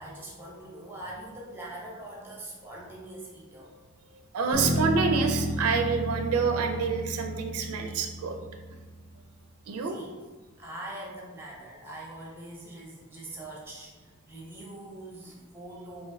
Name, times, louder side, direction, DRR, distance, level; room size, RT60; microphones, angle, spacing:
voice 1, 0.0-3.7 9.9-10.1 10.6-16.1, right 1 dB, 10° right, -4 dB, 0.7 m, -43 dB
voice 2, 4.3-8.4 9.7-10.0, right 5 dB, 85° right, 4 dB, 0.4 m, -27 dB
Bass guitar, 4.5-9.0, equal, 75° left, 0.9 m, -32 dB
3.1 x 2.6 x 3.6 m, 1.3 s
head